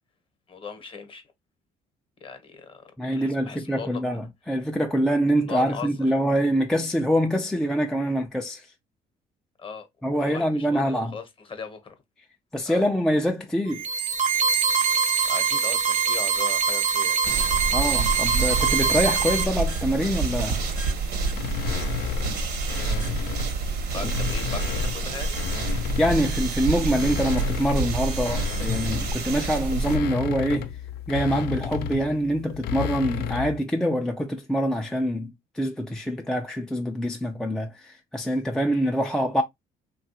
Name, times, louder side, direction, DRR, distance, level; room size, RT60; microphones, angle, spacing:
voice 1, 0.5-1.2 2.2-4.0 5.4-5.9 9.6-9.9 10.2-11.9 12.6-12.9 15.2-17.2 23.9-25.4, left 6 dB, 30° left, 0.8 m, -38 dB
voice 2, 3.0-8.7 10.0-11.1 12.5-13.8 17.7-20.6 24.0-24.1 26.0-30.7 31.1-39.4, equal, 5° left, 0.3 m, -25 dB
sound 1, 13.7-19.4, right 6 dB, 45° right, 0.6 m, -23 dB
sound 2, 17.2-30.0, right 3 dB, 70° right, 0.9 m, -28 dB
sound 3, 21.3-23.6 24.0-26.4 26.8-33.6, left 9 dB, 75° left, 0.4 m, -32 dB
3.1 x 2.3 x 2.7 m
cardioid pair, 110°, 17 cm